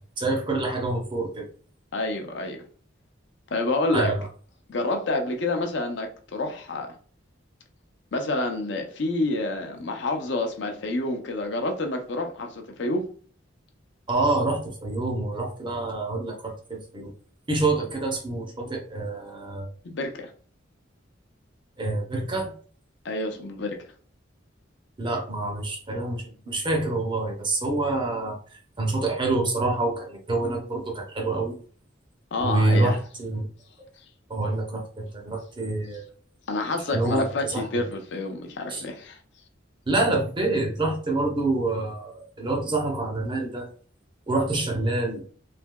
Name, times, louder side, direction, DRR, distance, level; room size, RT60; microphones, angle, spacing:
voice 1, 0.2-1.5 3.9-4.3 14.1-17.1 17.5-19.7 21.8-22.5 25.0-31.6 32.4-33.5 34.3-36.1 36.9-37.8 38.7-38.8 39.9-43.7 44.3-45.3, right 2 dB, 25° right, 0.6 m, -27 dB
voice 2, 1.9-2.6 3.5-4.1 4.7-6.9 8.1-13.0 19.8-20.3 23.0-23.8 32.3-33.0 36.5-39.2, left 2 dB, 60° left, 0.5 m, -28 dB
3.3 x 2.7 x 2.2 m
head